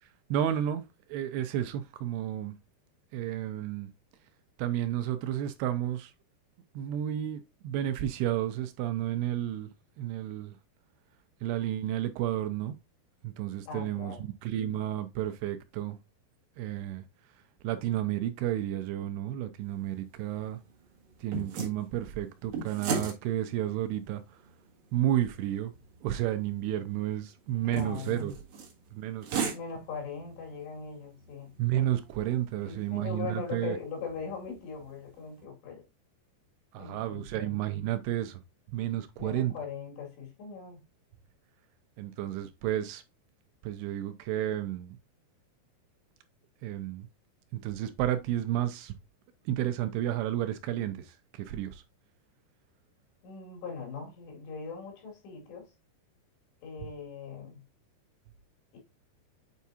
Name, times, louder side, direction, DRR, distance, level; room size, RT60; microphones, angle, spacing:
voice 1, 0.0-2.6 3.1-3.9 4.6-6.1 6.8-9.7 10.0-10.5 11.4-12.8 13.2-16.0 16.6-17.0 17.6-20.6 21.2-24.2 24.9-25.7 26.0-28.3 28.9-29.5 31.6-33.8 36.7-38.4 38.7-39.5 42.0-43.0 43.6-45.0 46.6-47.1 47.5-49.0 49.5-51.8, right 12 dB, 80° right, 2.5 m, -31 dB
voice 2, 13.7-14.3 27.5-28.3 29.5-31.5 32.6-35.8 36.8-37.6 39.2-40.8 53.2-55.7 56.6-57.6 58.7-58.8, left 5 dB, 80° left, 4.6 m, -40 dB
sound 1, 19.6-35.4, right 5 dB, 55° right, 2.5 m, -41 dB
8.3 x 4.6 x 2.7 m
omnidirectional pair, 4.9 m